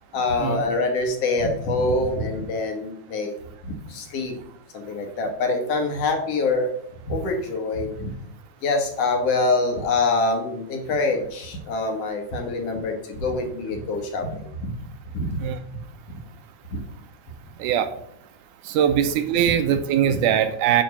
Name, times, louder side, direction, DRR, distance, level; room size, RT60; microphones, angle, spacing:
voice 1, 0.1-3.3 3.6-4.3 4.7-6.8 7.1-8.1 8.6-14.5 15.1-15.4 15.7-15.8 16.7-16.8, left 3 dB, 55° left, 3 dB, 2.1 m, -25 dB
voice 2, 18.7-20.8, right 9 dB, 80° right, 9 dB, 2.0 m, -21 dB
9.5 x 3.4 x 6.9 m, 0.74 s
omnidirectional pair, 3.7 m